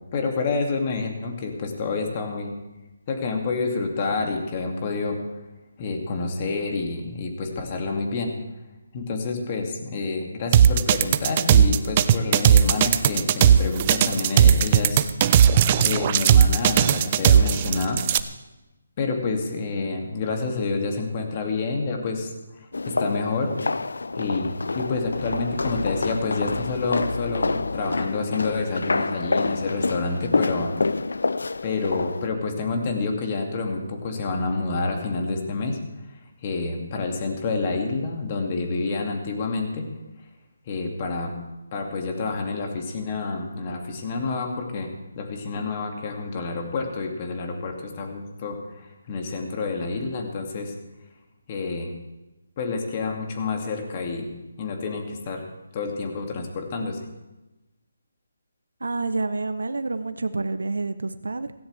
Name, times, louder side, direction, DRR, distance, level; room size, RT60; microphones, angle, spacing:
voice 1, 0.1-2.5 3.1-5.2 5.8-8.3 8.9-15.1 15.8-18.0 19.0-22.3 22.9-23.6 24.2-30.9 31.6-35.8 36.1-39.9 40.7-41.3 41.7-44.9 45.2-50.7 51.5-51.9 52.6-54.3 54.6-55.4 55.7-57.0, left 3 dB, 35° left, 2 dB, 2.5 m, -28 dB
sound 1, 10.5-18.2, right 9 dB, 30° right, 0.6 m, -17 dB
sound 2, 22.7-32.3, left 3 dB, 70° left, 0.5 m, -27 dB
voice 2, 58.8-61.5, right 3 dB, 75° right, 11 dB, 0.9 m, -28 dB
17.0 x 16.0 x 3.4 m, 1.0 s
figure-of-eight pair, 150°, 0 cm